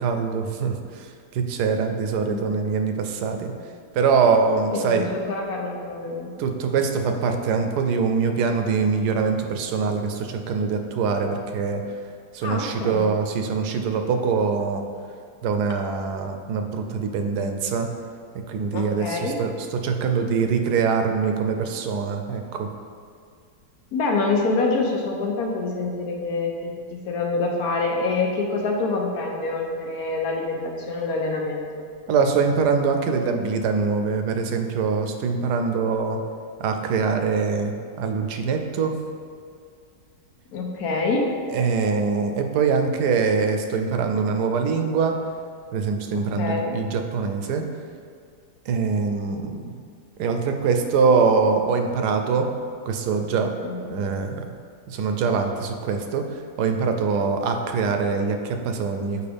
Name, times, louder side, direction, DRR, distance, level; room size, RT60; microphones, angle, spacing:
voice 1, 0.0-3.5 3.9-5.1 6.4-11.8 12.3-14.8 15.4-17.9 18.3-22.7 32.1-36.2 36.6-39.0 41.5-45.2 45.7-47.6 48.7-49.6 50.2-52.5 52.9-53.5 53.9-54.4 54.9-59.2, right 5 dB, 80° right, 5 dB, 1.1 m, -23 dB
voice 2, 4.7-6.3 12.4-13.1 18.7-19.4 23.9-31.8 40.5-41.3 46.1-46.8 53.6-53.9, left 3 dB, 70° left, 1 dB, 1.1 m, -26 dB
6.9 x 4.9 x 3.4 m, 2.2 s
omnidirectional pair, 1.8 m